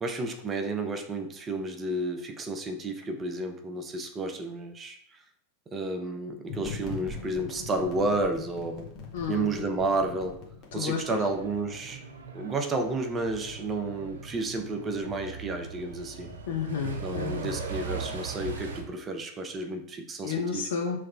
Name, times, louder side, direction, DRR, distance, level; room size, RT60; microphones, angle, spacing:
voice 1, 0.0-5.2 5.7-8.9 9.3-10.4 10.7-12.0 12.3-16.3 17.0-20.6, right 2 dB, 20° right, 5 dB, 0.5 m, -31 dB
sound 1, 6.5-11.9, left 4 dB, 35° left, 1.1 m, -42 dB
voice 2, 9.1-9.5 10.7-11.2 16.5-17.5 20.2-21.0, left 5 dB, 60° left, 0 dB, 0.6 m, -31 dB
Truck, 11.2-18.8, right 5 dB, 65° right, 0.6 m, -39 dB
5.6 x 3.1 x 2.2 m, 0.71 s
figure-of-eight pair, 90°, 0 cm